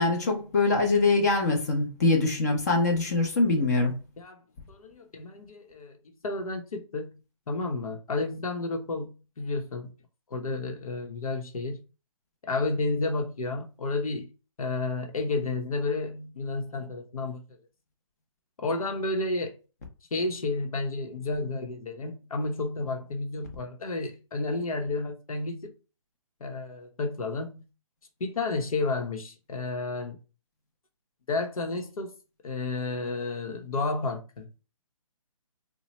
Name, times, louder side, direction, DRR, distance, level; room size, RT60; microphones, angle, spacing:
voice 1, 0.0-3.9, left 3 dB, 30° left, 0.6 m, -23 dB
voice 2, 4.7-7.1 7.5-9.1 9.4-9.9 10.3-11.8 12.4-14.3 14.6-17.6 18.6-19.5 20.1-25.7 26.4-27.7 28.2-30.2 31.3-32.1 32.4-34.5, left 3 dB, 90° left, 0.9 m, -31 dB
3.0 x 2.2 x 4.0 m
hypercardioid pair, 165°, 18 cm